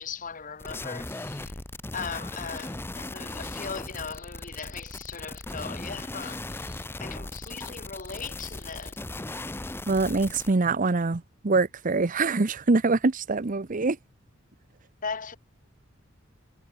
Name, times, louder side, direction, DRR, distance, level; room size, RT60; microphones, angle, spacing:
voice 1, 0.0-1.6 1.9-9.0 15.0-15.4, left 5 dB, 40° left, 1.7 m, -38 dB
sound 1, 0.6-10.5, left 2 dB, 10° left, 0.7 m, -38 dB
voice 2, 9.9-14.0, right 3 dB, 40° right, 0.7 m, -24 dB
head